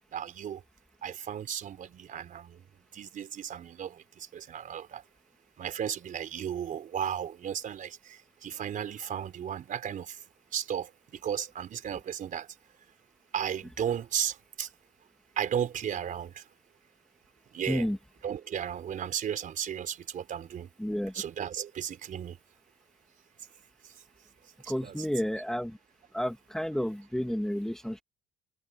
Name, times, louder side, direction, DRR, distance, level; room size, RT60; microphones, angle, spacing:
voice 1, 0.1-0.6 1.0-2.6 2.9-5.0 5.6-10.2 10.5-12.5 13.3-14.7 15.4-16.4 17.5-17.9 18.2-20.7 21.1-22.4 24.6-25.1, right 9 dB, 50° right, 4.2 m, -35 dB
voice 2, 17.7-18.0 20.8-21.1 24.7-25.8 26.1-28.0, equal, 5° left, 2.5 m, -31 dB
cardioid pair, 110°, 17 cm